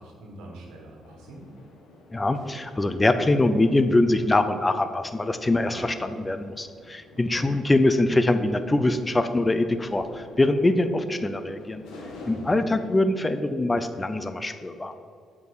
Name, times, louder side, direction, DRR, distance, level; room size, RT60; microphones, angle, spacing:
voice 1, 0.0-1.4 5.6-5.9 7.1-7.4 12.2-12.6, right 2 dB, 90° right, 0 dB, 1.6 m, -44 dB
sound 1, 1.0-12.9, left 2 dB, 85° left, 1.6 m, -49 dB
voice 2, 2.1-11.8 12.3-14.9, left 2 dB, 20° left, 10 dB, 0.6 m, -23 dB
7.8 x 4.8 x 4.8 m, 2.2 s
cardioid pair, 90°, 0 cm